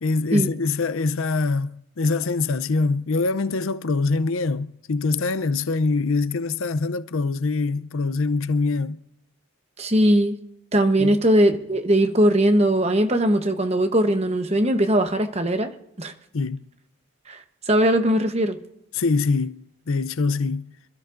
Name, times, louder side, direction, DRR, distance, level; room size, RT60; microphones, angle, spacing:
voice 1, 0.0-9.0 11.0-11.2 16.3-16.7 18.9-20.7, left 3 dB, 70° left, 0.6 m, -24 dB
voice 2, 9.8-10.4 10.7-16.1 17.3-17.4 17.7-18.6, right 1 dB, 30° right, 1.0 m, -20 dB
27.0 x 13.0 x 2.6 m
head